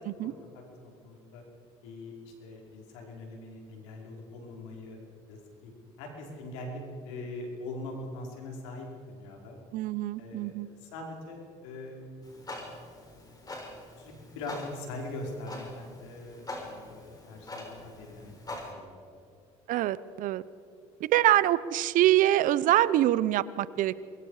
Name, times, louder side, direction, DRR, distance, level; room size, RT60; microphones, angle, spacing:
voice 1, 0.2-1.4 1.8-5.0 5.3-5.7 6.0-9.6 10.2-12.3 14.0-18.9 19.1-19.3, left 2 dB, 85° left, 0 dB, 5.1 m, -42 dB
voice 2, 9.7-10.7 19.7-20.4 21.1-24.0, right 14 dB, 65° right, 18 dB, 0.9 m, -25 dB
Clock, 12.2-18.7, left 2 dB, 25° left, 6.2 m, -44 dB
27.0 x 22.5 x 5.0 m, 2.3 s
supercardioid pair, 75°, 15 cm